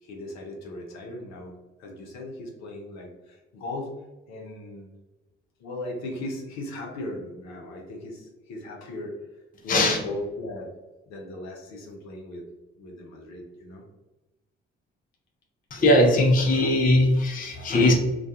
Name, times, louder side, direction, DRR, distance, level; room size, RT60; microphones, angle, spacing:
voice 1, 0.0-3.9 4.3-4.9 5.6-9.1 9.6-10.7 11.1-12.4 12.8-13.9, left 1 dB, 60° left, 0 dB, 0.7 m, -37 dB
voice 2, 15.7-17.9, left 1 dB, 30° left, 2 dB, 0.6 m, -20 dB
2.2 x 2.2 x 2.7 m, 1.1 s
hypercardioid pair, 45°, 30 cm